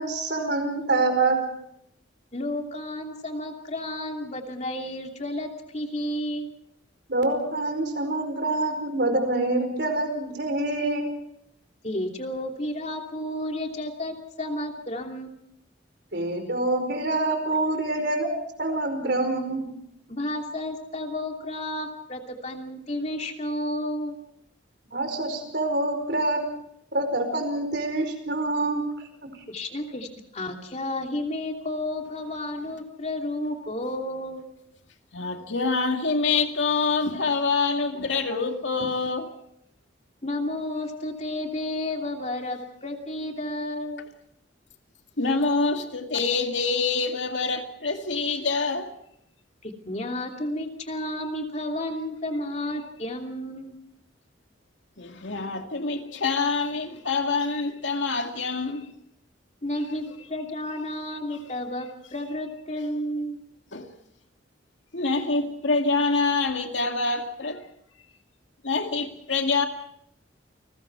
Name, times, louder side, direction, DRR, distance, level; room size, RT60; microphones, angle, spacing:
voice 1, 0.0-1.4 7.1-11.1 16.1-18.3 18.6-19.6 24.9-26.4 26.9-28.8 29.2-29.3, right 2 dB, 60° right, 4.9 m, -26 dB
voice 2, 2.3-6.5 11.8-15.3 20.1-24.2 29.5-30.1 30.3-34.4 40.2-44.1 49.6-53.8 59.6-63.4, left 1 dB, 35° left, 2.9 m, -32 dB
voice 3, 35.1-39.3 45.2-48.9 55.0-58.9 63.7-63.9 64.9-67.6 68.6-69.7, left 4 dB, 75° left, 2.3 m, -26 dB
29.5 x 20.5 x 4.7 m
head